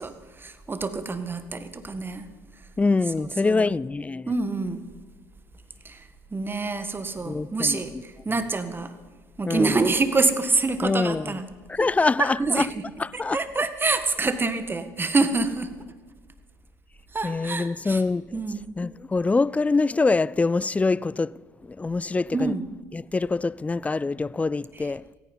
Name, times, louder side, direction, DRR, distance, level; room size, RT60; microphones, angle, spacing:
voice 1, 0.0-2.3 3.4-3.7 4.3-4.8 5.9-6.0 6.3-8.9 9.4-11.5 11.8-11.9 12.2-12.8 13.3-15.7 17.1-18.0 18.3-18.7 22.3-22.6 24.8-24.9, right 3 dB, 25° right, 1.7 m, -26 dB
voice 2, 2.8-4.3 7.2-7.8 9.5-9.8 10.8-11.3 11.7-12.7 13.0-13.4 17.2-18.2 18.8-21.4 21.7-22.5 22.9-25.0, left 3 dB, 15° left, 0.4 m, -24 dB
17.0 x 15.5 x 5.5 m
hypercardioid pair, 70°, 9 cm